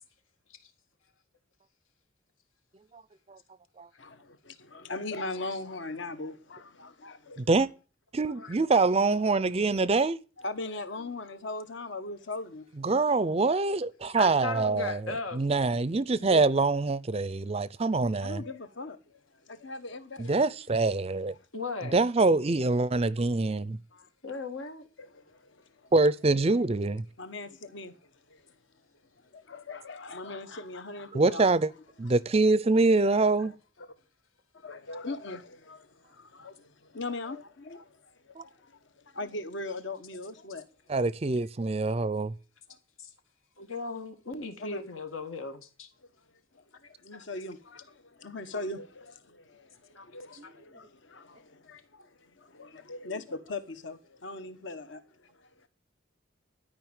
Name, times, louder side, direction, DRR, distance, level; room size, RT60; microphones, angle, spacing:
voice 1, 4.0-7.5 10.4-12.7 18.2-20.3 23.9-24.1 25.0-25.9 27.2-28.6 29.2-31.5 33.0-33.2 33.8-33.9 34.5-40.6 42.7-42.8 44.6-44.9 47.0-55.7, left 2 dB, 60° left, 1.1 m, -40 dB
voice 2, 7.4-7.7 8.1-10.2 12.8-15.0 15.3-18.4 20.2-21.3 21.9-23.8 25.9-27.0 31.1-31.7 32.0-33.5 38.4-38.5 40.9-42.3 50.4-50.5, right 3 dB, 30° right, 0.5 m, -25 dB
voice 3, 14.2-15.4 16.2-16.5 21.5-22.0 24.2-24.9 43.0-43.1 43.6-45.9 46.8-47.3 49.9-50.5, left 3 dB, 80° left, 2.0 m, -37 dB
12.5 x 5.3 x 8.9 m
head